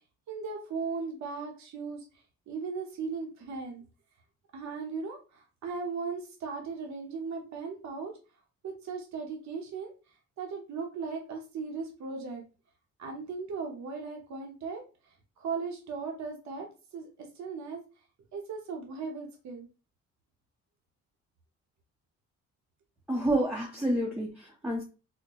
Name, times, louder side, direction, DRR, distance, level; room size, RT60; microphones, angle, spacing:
voice 1, 0.3-2.0 2.5-3.8 4.5-8.1 8.6-12.4 13.0-17.8 18.3-19.7, right 4 dB, 65° right, 0.9 m, -37 dB
voice 2, 23.1-24.8, right 1 dB, 5° right, 0.7 m, -29 dB
4.3 x 2.1 x 2.9 m
cardioid pair, 90°, 30 cm